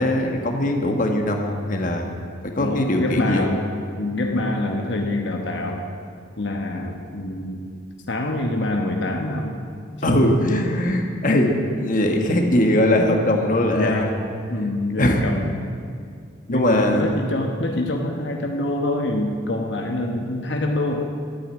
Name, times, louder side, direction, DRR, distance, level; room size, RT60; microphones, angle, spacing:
voice 1, 0.0-2.1 2.4-3.5 10.0-14.1 14.9-15.2 16.5-17.2, left 1 dB, 45° left, 3 dB, 1.4 m, -21 dB
voice 2, 2.6-3.6 4.0-5.9 6.4-7.7 8.1-9.6 10.1-10.2 13.8-14.2 14.5-15.5 16.5-21.0, left 1 dB, 65° left, 2 dB, 1.1 m, -25 dB
13.0 x 8.7 x 9.0 m, 2.2 s
head